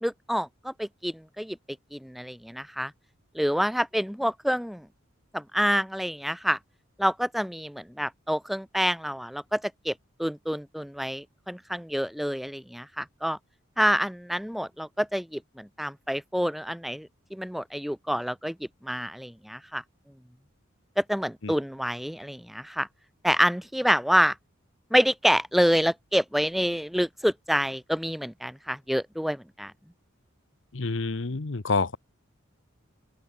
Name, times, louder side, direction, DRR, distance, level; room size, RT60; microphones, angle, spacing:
voice 1, 0.0-1.6 1.9-2.9 3.3-4.9 5.3-6.6 7.0-9.9 10.2-13.4 13.8-19.8 21.0-22.9 23.2-24.4 24.9-29.7, equal, ahead, 1.0 m, -27 dB
voice 2, 30.7-32.0, left 4 dB, 70° left, 0.9 m, -28 dB
open air
head